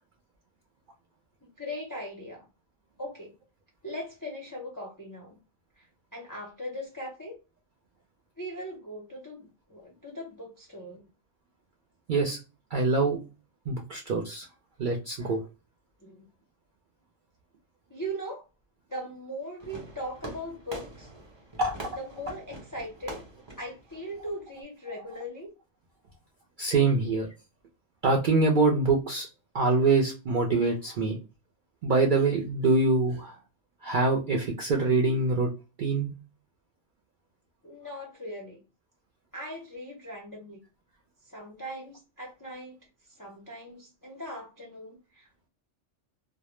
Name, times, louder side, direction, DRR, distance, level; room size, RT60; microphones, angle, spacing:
voice 1, 1.4-2.5 3.0-3.3 3.8-5.4 5.8-7.4 8.4-11.0 16.0-16.3 17.9-18.4 18.9-21.1 22.0-23.2 23.6-25.5 37.6-38.6 39.3-40.6 41.2-42.8 43.1-45.3, equal, 30° left, -2 dB, 0.4 m, -39 dB
voice 2, 12.7-13.2 13.7-14.5 14.8-15.4 21.6-21.7 26.6-27.3 28.0-29.3 29.5-31.2 31.8-33.4 33.8-35.5 35.8-36.1, right 3 dB, 60° right, 0 dB, 0.5 m, -24 dB
Fireworks, 19.6-24.6, right 2 dB, 25° right, 0.9 m, -44 dB
2.0 x 2.0 x 2.9 m, 0.30 s
omnidirectional pair, 1.2 m